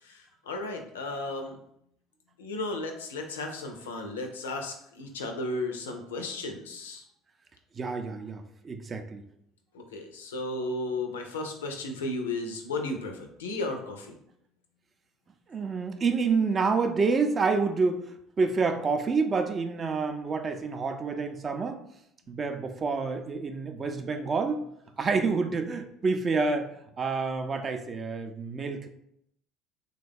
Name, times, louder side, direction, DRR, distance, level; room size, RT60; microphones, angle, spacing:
voice 1, 0.0-1.6 2.4-7.0 9.7-14.2, left 2 dB, 80° left, 4 dB, 0.4 m, -34 dB
voice 2, 7.8-9.2 15.5-21.8 22.3-24.7 25.0-26.7 27.0-28.9, right 4 dB, 35° right, 7 dB, 0.4 m, -28 dB
3.3 x 2.3 x 3.4 m, 0.74 s
figure-of-eight pair, 60°, 0 cm